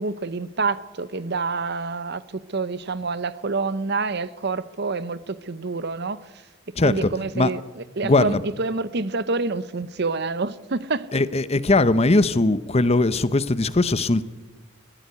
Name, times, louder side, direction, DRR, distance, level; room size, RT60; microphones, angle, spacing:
voice 1, 0.0-6.3 6.8-11.1, right 3 dB, 55° right, 0.9 m, -27 dB
voice 2, 6.8-7.1 7.3-7.5 8.0-8.4 11.1-14.3, left 2 dB, 30° left, 0.8 m, -20 dB
22.0 x 14.5 x 9.5 m
head